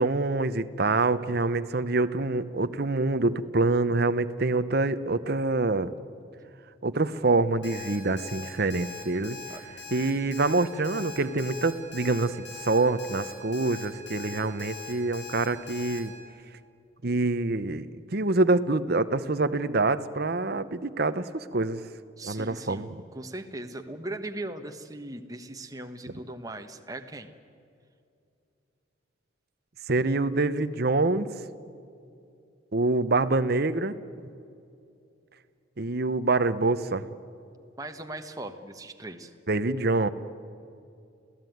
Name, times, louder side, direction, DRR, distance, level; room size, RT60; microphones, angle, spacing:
voice 1, 0.0-5.9 6.8-9.4 9.9-12.4 12.6-16.1 17.0-21.8 22.2-23.0 29.9-31.3 32.7-34.0 35.8-37.0 39.5-40.1, right 3 dB, 50° right, 11 dB, 0.8 m, -26 dB
Alarm, 7.6-16.0, left 3 dB, 55° left, 6.0 m, -41 dB
voice 2, 22.2-27.3 37.8-39.3, right 1 dB, 15° right, 6 dB, 1.3 m, -39 dB
27.5 x 16.5 x 9.3 m, 2.6 s
head